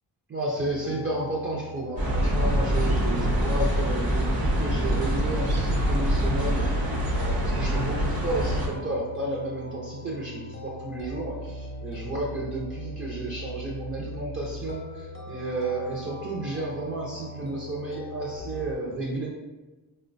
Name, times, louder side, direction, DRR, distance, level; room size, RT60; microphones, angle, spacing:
voice 1, 0.3-6.7 7.1-19.3, right 2 dB, 30° right, -4 dB, 0.5 m, -32 dB
sound 1, 0.6-18.7, left 1 dB, 30° left, 0.4 m, -40 dB
sound 2, 2.0-8.7, equal, 60° right, 0.9 m, -25 dB
4.5 x 2.1 x 2.5 m, 1.2 s
wide cardioid pair, 125°, 41 cm